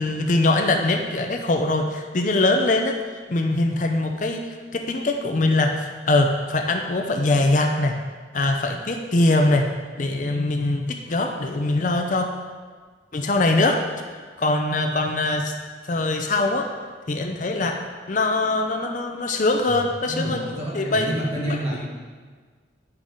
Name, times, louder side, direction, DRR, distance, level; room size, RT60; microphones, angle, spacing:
voice 1, 0.0-3.0 3.3-4.4 4.7-8.0 8.3-9.7 10.0-12.3 13.1-13.8 14.1-15.5 15.8-16.7 17.1-17.8 18.1-20.4 20.7-21.1 21.4-21.9, left 2 dB, 40° left, 4 dB, 0.6 m, -22 dB
voice 2, 19.7-21.9, equal, 35° right, -3 dB, 1.4 m, -29 dB
10.0 x 6.2 x 3.8 m, 1.5 s
head